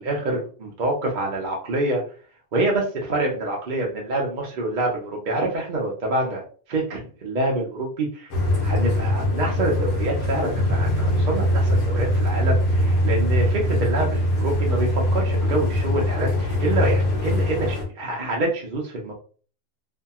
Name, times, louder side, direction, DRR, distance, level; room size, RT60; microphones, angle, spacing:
voice 1, 0.0-2.0 2.5-6.4 6.7-8.3 8.6-19.1, right 2 dB, 50° right, -1 dB, 0.6 m, -26 dB
sound 1, 8.3-17.8, left 1 dB, 70° left, 1.2 m, -22 dB
2.7 x 2.6 x 2.3 m, 0.41 s
omnidirectional pair, 1.4 m